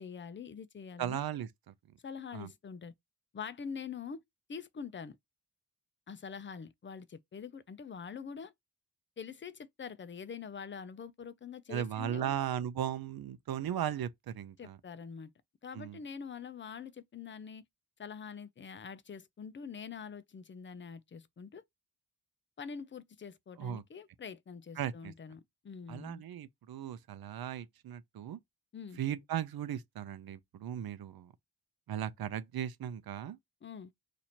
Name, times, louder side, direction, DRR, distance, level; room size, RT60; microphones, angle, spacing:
voice 1, 0.0-1.2 2.0-2.9 3.3-4.2 4.5-5.2 6.1-8.5 9.2-12.4 14.6-15.3 15.6-17.6 18.0-21.6 22.6-26.2 28.7-29.0 33.6-33.9, left 6 dB, 30° left, 0.5 m, -45 dB
voice 2, 1.0-1.7 2.3-2.5 11.7-14.8 15.7-16.0 23.6-23.8 24.8-25.1 25.9-28.4 29.0-31.3 31.9-33.4, right 10 dB, 65° right, 0.6 m, -37 dB
2.8 x 2.6 x 4.2 m
cardioid pair, 75°, 39 cm